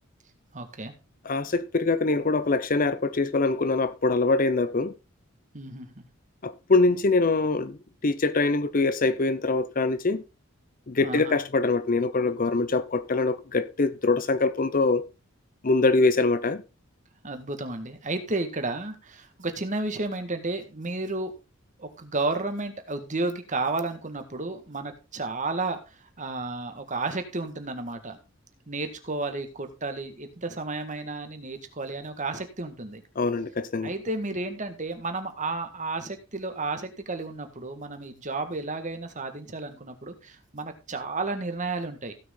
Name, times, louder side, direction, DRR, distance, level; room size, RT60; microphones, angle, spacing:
voice 1, 0.5-0.9 5.5-6.0 11.0-11.4 17.2-21.3 21.8-25.8 26.2-28.2 28.7-33.0 33.8-42.1, right 3 dB, 35° right, 1.8 m, -32 dB
voice 2, 1.2-4.9 6.4-10.2 10.9-15.0 15.6-16.6 33.2-33.9, left 3 dB, 40° left, 0.7 m, -24 dB
16.0 x 6.2 x 3.7 m
head